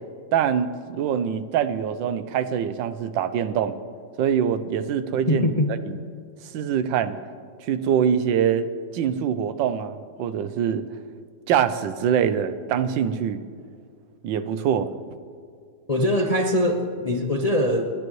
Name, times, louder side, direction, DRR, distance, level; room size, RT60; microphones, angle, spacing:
voice 1, 0.3-3.8 4.2-5.5 5.9-6.0 6.5-7.2 7.6-8.7 8.9-10.9 11.5-13.4 14.2-14.9, right 8 dB, 90° right, 12 dB, 1.4 m, -24 dB
voice 2, 5.3-5.7 15.9-17.9, left 1 dB, 40° left, 2 dB, 0.5 m, -22 dB
29.0 x 10.5 x 3.1 m, 2.2 s
omnidirectional pair, 2.0 m